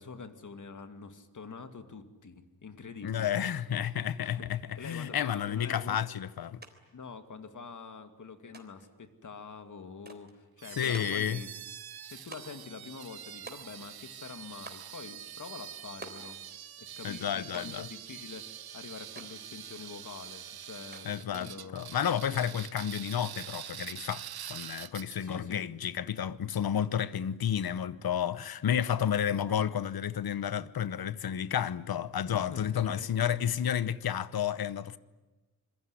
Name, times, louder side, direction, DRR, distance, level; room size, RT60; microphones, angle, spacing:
voice 1, 0.0-3.4 4.2-4.4 4.8-6.0 6.9-11.5 12.1-16.4 16.8-21.9 25.2-25.7 32.5-33.1, left 5 dB, 55° left, 2.4 m, -45 dB
voice 2, 3.0-6.6 10.8-11.4 17.0-17.9 21.0-35.0, left 9 dB, 75° left, 1.0 m, -31 dB
sound 1, 6.6-6.7 7.0-7.8 8.5-9.0 10.1-10.4 10.9-11.3 12.3-12.7 13.5-14.0 14.7-15.0 16.0-16.3 17.5-17.9 19.2-19.4 20.9-21.3, right 3 dB, 25° right, 3.6 m, -48 dB
sound 2, 10.6-25.4, right 10 dB, 80° right, 0.8 m, -45 dB
26.5 x 22.0 x 9.9 m
wide cardioid pair, 125°, 37 cm